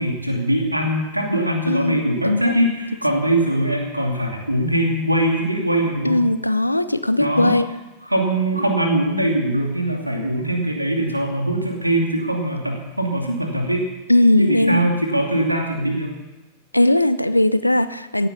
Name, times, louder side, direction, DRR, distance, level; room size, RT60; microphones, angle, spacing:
voice 1, 0.0-6.2 7.2-7.6 8.0-13.9 14.4-16.2, right 1 dB, 85° right, 1 dB, 2.6 m, -22 dB
voice 2, 1.7-2.7 3.1-3.2 6.0-7.7 14.1-14.8 16.7-18.3, left 1 dB, 85° left, 13 dB, 0.6 m, -18 dB
17.0 x 9.9 x 7.1 m, 1.1 s
figure-of-eight pair, 90°, 0 cm